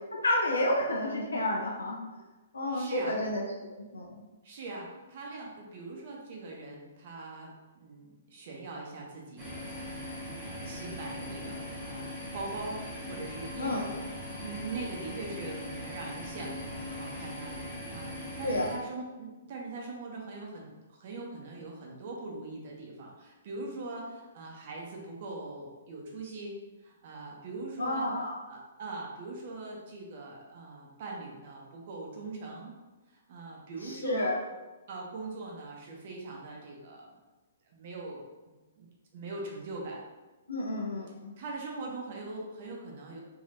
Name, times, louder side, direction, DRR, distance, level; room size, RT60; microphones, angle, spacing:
voice 1, 0.1-2.0 2.5-3.4 3.8-4.3 13.6-13.8 18.4-18.7 27.8-28.4 33.8-34.4 40.5-41.3, left 1 dB, 75° left, -2 dB, 0.5 m, -30 dB
voice 2, 2.7-3.1 4.4-10.0 10.4-14.0 14.4-26.5 26.8-32.7 33.1-34.3 34.9-37.1 37.7-38.2 38.8-40.0 41.4-43.2, right 3 dB, 45° right, -1 dB, 0.7 m, -42 dB
sound 1, 9.4-18.7, left 1 dB, 15° right, 1.1 m, -40 dB
3.3 x 2.7 x 2.6 m, 1.2 s
figure-of-eight pair, 120°, 0 cm